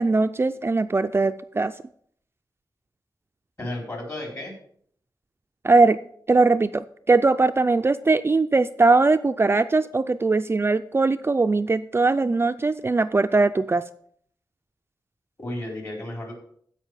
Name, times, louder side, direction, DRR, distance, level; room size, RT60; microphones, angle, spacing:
voice 1, 0.0-1.7 5.6-6.0 6.3-13.8, right 3 dB, 30° right, 9 dB, 0.4 m, -20 dB
voice 2, 3.6-4.5 15.4-16.3, left 1 dB, 40° left, 0 dB, 4.2 m, -33 dB
15.0 x 5.4 x 4.8 m, 0.63 s
wide cardioid pair, 115°, 8 cm